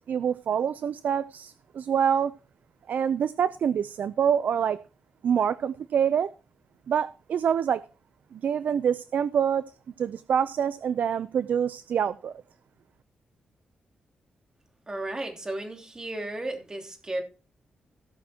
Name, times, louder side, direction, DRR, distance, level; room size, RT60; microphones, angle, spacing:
voice 1, 0.1-2.3 2.9-4.8 5.2-6.3 6.9-7.8 8.3-9.6 10.0-12.3, right 8 dB, 70° right, 0.5 m, -26 dB
voice 2, 14.9-17.2, right 1 dB, 20° right, 3.3 m, -34 dB
17.5 x 6.2 x 4.4 m
cardioid pair, 100°, 3 cm